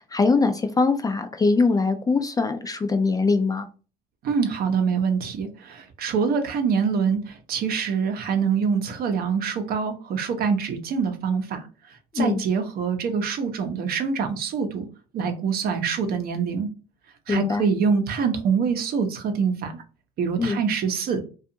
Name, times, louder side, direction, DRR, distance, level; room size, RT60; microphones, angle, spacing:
voice 1, 0.0-3.7 12.1-12.4 17.3-17.7 20.4-20.6, left 4 dB, 20° left, 7 dB, 0.4 m, -22 dB
voice 2, 4.2-11.7 12.1-14.9 15.1-16.7 17.3-19.7 20.2-21.2, right 6 dB, 55° right, 6 dB, 0.7 m, -25 dB
2.5 x 2.4 x 2.7 m, 0.35 s
supercardioid pair, 95°, 19 cm